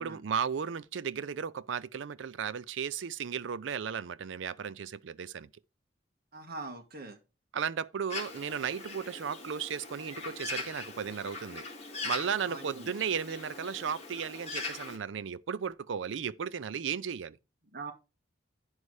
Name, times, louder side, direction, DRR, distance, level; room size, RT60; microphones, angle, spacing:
voice 1, 0.0-5.5 7.5-11.6 12.0-17.4, right 7 dB, 85° right, 0.4 m, -35 dB
voice 2, 6.3-7.2 12.5-12.9 17.7-17.9, right 3 dB, 55° right, 1.5 m, -42 dB
Bird, 8.1-15.0, left 3 dB, 35° left, 2.0 m, -41 dB
9.7 x 5.4 x 4.7 m
head